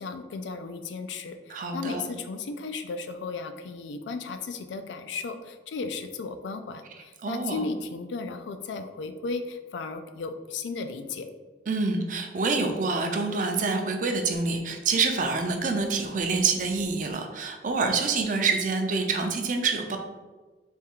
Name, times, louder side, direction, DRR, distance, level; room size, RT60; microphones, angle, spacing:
voice 1, 0.0-11.3, left 4 dB, 90° left, 8 dB, 0.4 m, -35 dB
voice 2, 1.5-2.0 7.2-7.7 11.7-20.0, right 4 dB, 45° right, 4 dB, 0.5 m, -26 dB
3.5 x 2.3 x 4.4 m, 1.3 s
head